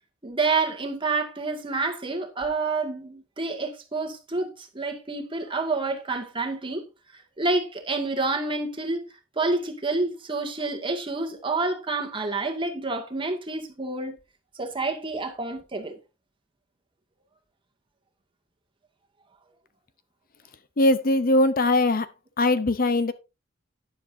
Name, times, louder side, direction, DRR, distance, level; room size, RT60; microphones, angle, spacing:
voice 1, 0.2-6.8 7.4-9.0 9.4-14.2 14.6-16.0, right 3 dB, 25° right, 2.1 m, -28 dB
voice 2, 20.8-22.1 22.4-23.1, left 2 dB, 50° left, 0.7 m, -21 dB
11.5 x 10.0 x 2.7 m
head